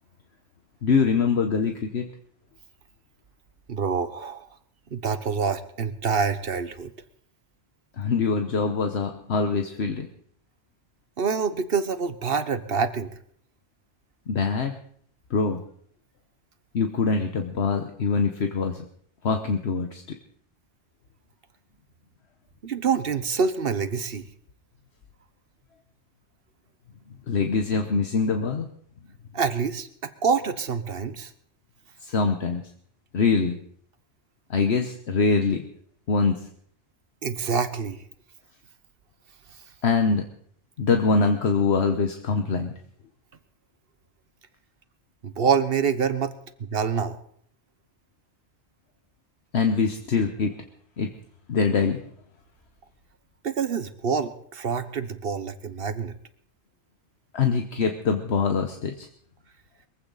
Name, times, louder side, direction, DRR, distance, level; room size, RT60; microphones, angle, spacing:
voice 1, 0.8-2.0 8.0-10.1 14.3-14.8 15.3-15.6 16.7-18.8 19.2-20.0 27.3-28.7 32.0-32.6 33.1-33.6 34.5-35.7 36.1-36.5 39.8-40.2 40.8-42.7 49.5-50.5 51.0-51.1 51.5-52.0 57.3-59.1, left 5 dB, 65° left, 5 dB, 1.3 m, -23 dB
voice 2, 3.7-4.5 4.9-6.9 11.2-13.1 22.6-24.2 29.3-31.3 37.2-38.0 45.2-47.2 53.4-56.1, right 6 dB, 55° right, 11 dB, 1.3 m, -26 dB
22.0 x 15.5 x 4.1 m, 0.62 s
omnidirectional pair, 1.2 m